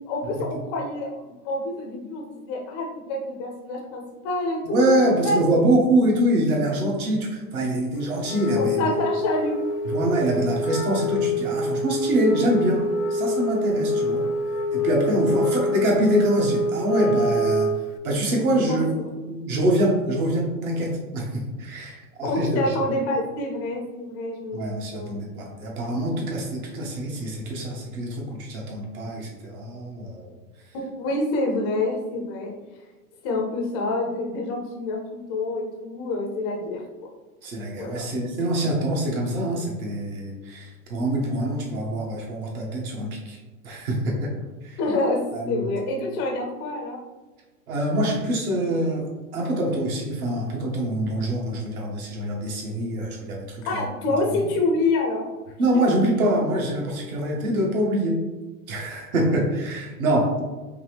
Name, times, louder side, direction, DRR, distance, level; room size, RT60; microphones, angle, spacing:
voice 1, 0.1-4.8 5.2-5.4 8.5-9.7 15.2-15.6 18.7-19.0 22.2-24.6 24.9-25.3 30.7-32.5 33.2-37.1 37.8-38.1 44.8-45.2 45.5-47.0 53.6-55.2, left 2 dB, 20° left, 0 dB, 0.3 m, -27 dB
voice 2, 4.6-8.9 9.8-14.3 14.7-17.7 18.0-19.0 19.3-22.7 24.5-30.3 37.4-43.4 43.6-44.3 44.6-44.8 45.3-45.7 47.7-49.1 49.3-53.9 54.3-54.4 55.6-58.2 58.7-60.4, right 1 dB, 65° right, -2 dB, 1.4 m, -25 dB
Wind instrument woodwind instrument, 8.2-18.0, left 1 dB, 85° left, 0.6 m, -25 dB
5.3 x 2.0 x 3.2 m, 1.2 s
hypercardioid pair, 130°, 46 cm